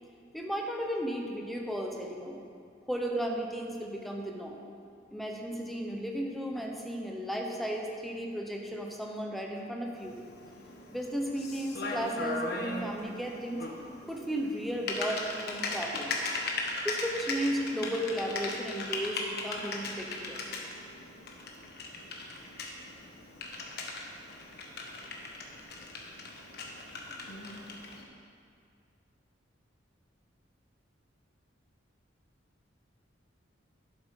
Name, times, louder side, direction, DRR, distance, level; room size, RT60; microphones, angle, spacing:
voice 1, 0.3-2.4 2.9-4.6 5.1-10.2 10.9-13.6 14.1-16.1 16.8-20.4, equal, ahead, 0 dB, 1.0 m, -34 dB
Typing, 10.0-28.0, left 2 dB, 55° left, 1.3 m, -38 dB
11.0 x 7.9 x 5.4 m, 2.3 s
head